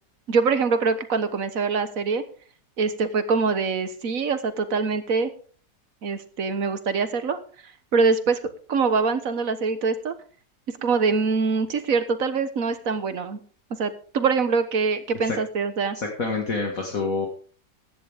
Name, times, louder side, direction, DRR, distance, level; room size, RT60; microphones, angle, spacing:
voice 1, 0.3-2.2 2.8-5.3 6.0-7.4 7.9-8.4 8.7-10.1 10.8-13.4 13.8-16.0, right 4 dB, 55° right, 10 dB, 1.5 m, -24 dB
voice 2, 16.0-17.3, left 4 dB, 50° left, 1 dB, 2.1 m, -27 dB
15.0 x 11.0 x 3.5 m, 0.43 s
omnidirectional pair, 1.9 m